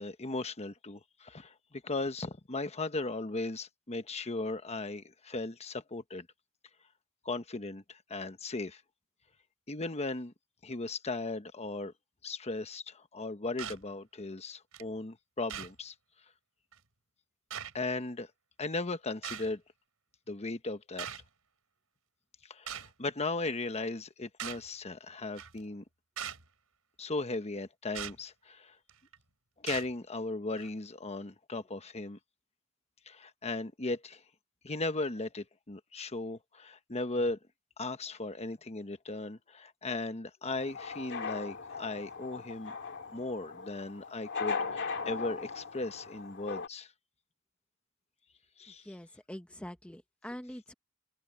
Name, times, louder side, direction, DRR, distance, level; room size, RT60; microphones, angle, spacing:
voice 1, 0.0-6.3 7.2-8.8 9.7-10.3 10.6-11.9 12.2-15.9 17.7-18.3 18.6-19.6 20.3-21.1 22.4-25.8 27.0-28.8 29.6-32.2 33.1-34.2 34.6-37.4 37.8-42.7 43.1-46.9 48.6-49.0, left 2 dB, 30° left, 1.1 m, -37 dB
sound 1, 13.6-13.8 14.7-14.8 15.5-15.7 16.7-16.8 17.5-17.7 19.2-19.5 21.0-21.2 22.7-22.9 24.4-24.7 25.4-25.6 26.2-26.4 27.9-28.2 28.9-29.1 29.7-29.9 30.6-30.7, right 9 dB, 75° right, 5.5 m, -40 dB
sound 2, 40.4-46.7, left 5 dB, 55° left, 2.3 m, -39 dB
voice 2, 48.8-50.7, equal, 5° left, 0.8 m, -44 dB
head